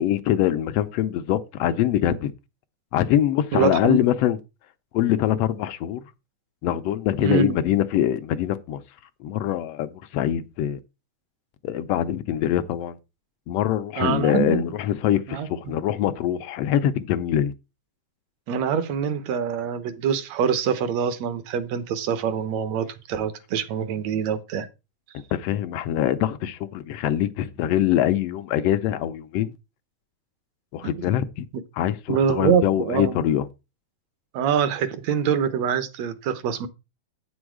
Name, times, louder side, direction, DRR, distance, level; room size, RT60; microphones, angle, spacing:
voice 1, 0.0-2.3 2.9-4.4 4.9-6.0 6.6-8.8 9.2-10.8 11.6-13.0 13.5-17.5 25.1-29.5 30.7-31.5 31.8-33.5, left 11 dB, 75° left, 1.5 m, -23 dB
voice 2, 3.5-4.0 7.2-7.6 14.0-14.7 15.3-15.7 18.5-24.7 30.8-31.1 32.1-33.2 34.3-36.7, right 7 dB, 70° right, 2.1 m, -25 dB
8.6 x 6.3 x 4.7 m
omnidirectional pair, 3.4 m